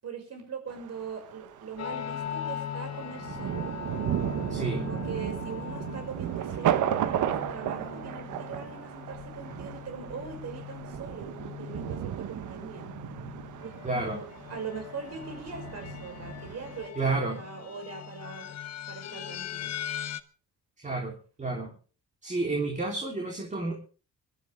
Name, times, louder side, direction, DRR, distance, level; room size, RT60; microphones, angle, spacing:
voice 1, 0.0-3.7 4.7-12.9 13.6-18.6 18.9-19.8, right 5 dB, 60° right, 5 dB, 6.2 m, -41 dB
Thunder, 0.7-16.9, right 10 dB, 80° right, 1.2 m, -34 dB
sound 1, 1.8-20.2, left 10 dB, 55° left, 1.2 m, -41 dB
voice 2, 4.5-4.8 13.8-14.2 17.0-17.4 20.8-21.7 22.2-23.7, right 3 dB, 25° right, 0 dB, 3.6 m, -30 dB
22.0 x 12.5 x 3.6 m, 0.36 s
cardioid pair, 90°, 30 cm